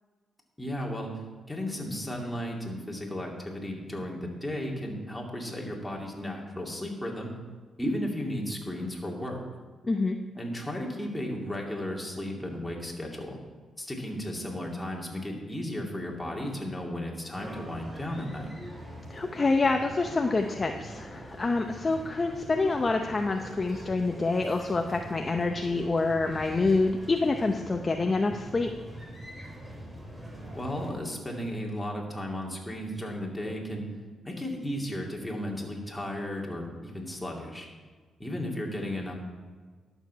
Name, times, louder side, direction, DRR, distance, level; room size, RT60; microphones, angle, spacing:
voice 1, 0.6-1.1 1.5-7.3 7.8-9.4 10.3-13.4 13.8-18.5 30.5-33.8 34.2-37.7 38.2-39.1, left 1 dB, 10° left, -2 dB, 2.7 m, -34 dB
voice 2, 9.8-10.2 19.1-28.7, left 3 dB, 30° left, 4 dB, 0.7 m, -27 dB
sound 1, 17.3-30.9, right 1 dB, 15° right, 3.1 m, -43 dB
11.5 x 7.1 x 5.8 m, 1.4 s
cardioid pair, 75°, 0 cm